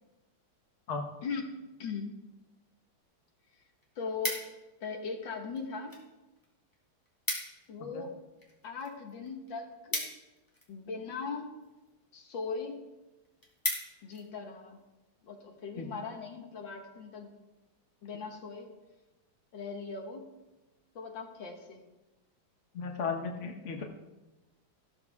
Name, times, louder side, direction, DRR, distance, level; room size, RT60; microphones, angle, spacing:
voice 1, 1.2-2.2 3.6-3.7 4.0-4.4 4.8-6.0 7.7-8.1 8.6-10.1 10.7-11.5 12.1-12.8 14.0-14.8 15.2-17.3 18.0-18.7 19.5-20.3 21.0-21.8, left 4 dB, 60° left, 3 dB, 2.1 m, -39 dB
sound 1, 3.0-3.1 3.5-4.8 5.5-6.1 6.4-6.5 6.7-6.8 7.0-7.7 8.0-10.9 11.6-11.9 12.4-12.5 12.9-13.0 13.2-14.2 14.7-14.9, left 1 dB, 10° left, 2.6 m, -37 dB
voice 2, 22.7-23.8, left 5 dB, 40° left, 2 dB, 1.3 m, -35 dB
14.0 x 13.0 x 3.6 m, 1.1 s
omnidirectional pair, 2.3 m